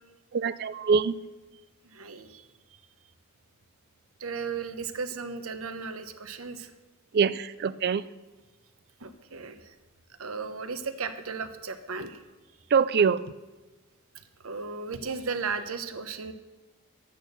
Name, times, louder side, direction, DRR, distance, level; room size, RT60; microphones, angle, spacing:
voice 1, 0.3-1.2 7.1-8.0 12.7-13.2, right 6 dB, 45° right, 17 dB, 0.4 m, -24 dB
voice 2, 1.8-2.4 4.2-6.7 9.0-9.6 10.2-12.2 14.4-16.3, right 5 dB, 70° right, 9 dB, 0.9 m, -35 dB
11.0 x 8.4 x 6.5 m, 1.2 s
head